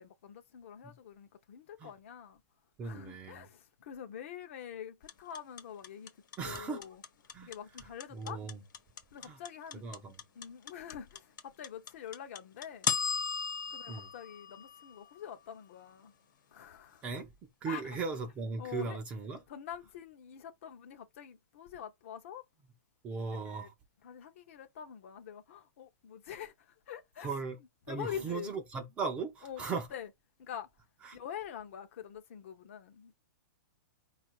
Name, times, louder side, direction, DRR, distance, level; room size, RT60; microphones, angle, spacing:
voice 1, 0.0-2.4 2.8-6.1 6.4-7.0 7.4-8.4 9.1-12.9 13.7-16.1 16.5-17.1 17.7-18.0 18.6-19.0 19.5-22.5 23.2-23.7 24.0-27.4 27.9-28.5 29.4-30.1 30.4-30.7 31.1-33.1, left 9 dB, 40° left, 0.6 m, -45 dB
voice 2, 2.8-3.5 6.4-6.8 7.3-7.5 8.1-8.6 9.2-9.4 9.8-10.1 13.9-14.1 17.0-17.3 17.6-19.4 23.0-23.7 27.2-27.6 27.9-29.9 31.0-31.2, right 4 dB, 10° right, 0.4 m, -37 dB
sound 1, 5.1-15.3, left 6 dB, 65° left, 1.1 m, -36 dB
4.8 x 2.4 x 4.4 m
hypercardioid pair, 175°, 11 cm